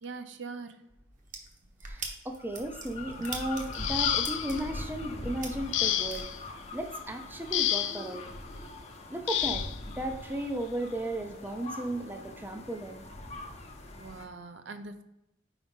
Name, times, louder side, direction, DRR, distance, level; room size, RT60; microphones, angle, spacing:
voice 1, 0.0-0.8 3.2-3.3 14.0-15.0, right 4 dB, 65° right, 0.5 m, -42 dB
sound 1, 1.2-6.2, right 4 dB, 45° right, 1.0 m, -41 dB
voice 2, 1.8-6.3 6.7-8.2 9.1-9.7 10.0-13.1, right 1 dB, 10° right, 0.4 m, -35 dB
sound 2, 2.4-14.3, left 2 dB, 35° left, 0.7 m, -42 dB
sound 3, 3.7-4.6 5.7-6.4 7.5-8.1 9.3-9.8 11.0-11.1 11.6-11.8, left 11 dB, 65° left, 0.4 m, -29 dB
4.8 x 4.0 x 5.3 m
head